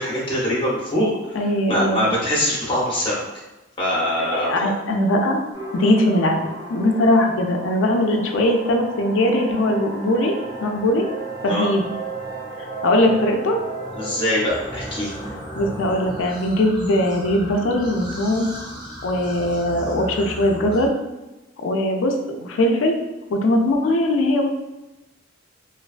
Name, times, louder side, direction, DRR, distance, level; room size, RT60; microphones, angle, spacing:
voice 1, 0.0-1.4 1.7-3.2 3.8-4.7 11.5-11.7 13.9-15.1, equal, 25° left, -5 dB, 0.7 m, -23 dB
voice 2, 1.3-2.1 4.2-5.4 5.7-6.4 6.7-10.3 10.6-11.1 11.4-11.8 12.8-13.6 15.6-18.5 19.0-20.9 21.6-23.0 23.3-24.5, left 1 dB, 80° left, 3 dB, 0.4 m, -20 dB
sound 1, 5.5-16.2, right 2 dB, 45° right, 1.3 m, -34 dB
sound 2, 14.5-20.9, equal, 25° right, 0.4 m, -36 dB
2.5 x 2.2 x 2.4 m, 1.1 s
head